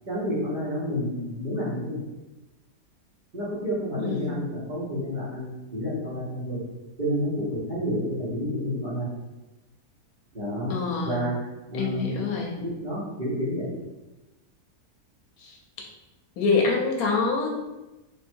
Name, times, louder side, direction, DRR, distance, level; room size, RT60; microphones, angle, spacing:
voice 1, 0.1-2.0 3.3-6.6 7.0-9.1 10.3-10.7 11.0-11.3 11.7-12.1 12.6-13.7, equal, 35° right, -8 dB, 1.1 m, -29 dB
voice 2, 4.0-4.4 10.7-11.2 11.7-12.6 15.4-15.6 16.4-17.5, left 4 dB, 70° left, 1 dB, 1.0 m, -26 dB
3.2 x 2.6 x 4.4 m, 1.1 s
omnidirectional pair, 1.7 m